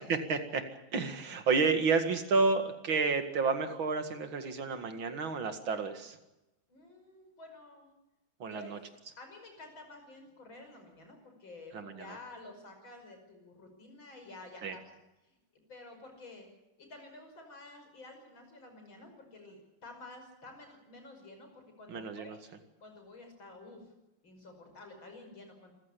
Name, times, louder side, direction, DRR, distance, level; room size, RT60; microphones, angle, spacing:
voice 1, 0.1-0.6 0.9-6.2 8.4-8.8 11.7-12.0 14.6-14.8 21.9-22.4, right 4 dB, 85° right, 7 dB, 2.8 m, -30 dB
voice 2, 6.7-7.9 8.5-8.7 9.2-15.0 15.2-15.4 15.7-16.5 16.8-22.4 22.8-23.9 24.2-25.7, left 2 dB, 85° left, 4 dB, 6.3 m, -51 dB
26.5 x 15.0 x 8.4 m, 0.96 s
omnidirectional pair, 2.1 m